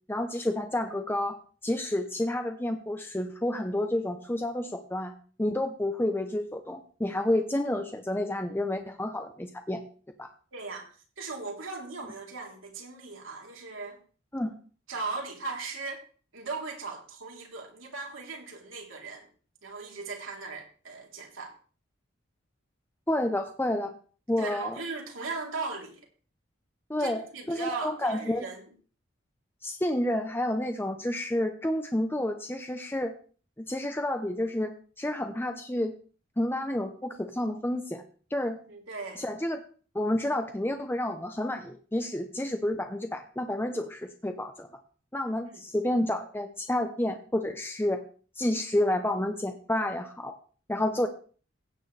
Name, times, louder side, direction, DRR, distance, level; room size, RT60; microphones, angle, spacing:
voice 1, 0.1-1.4 1.6-5.1 5.4-9.8 10.2-10.3 14.3-14.5 23.1-23.9 24.3-24.8 26.9-27.2 27.5-28.5 29.6-33.1 33.6-35.9 36.4-38.0 38.3-38.6 39.2-39.6 39.9-44.7 45.1-48.0 48.4-50.3 50.7-51.1, left 1 dB, 10° left, 0.7 m, -30 dB
voice 2, 10.5-10.9 11.2-14.0 14.9-16.0 16.3-19.3 19.6-21.5 24.4-26.0 27.0-28.7 38.7-39.2 45.5-45.6, right 3 dB, 85° right, 3.5 m, -38 dB
16.0 x 9.2 x 3.3 m
head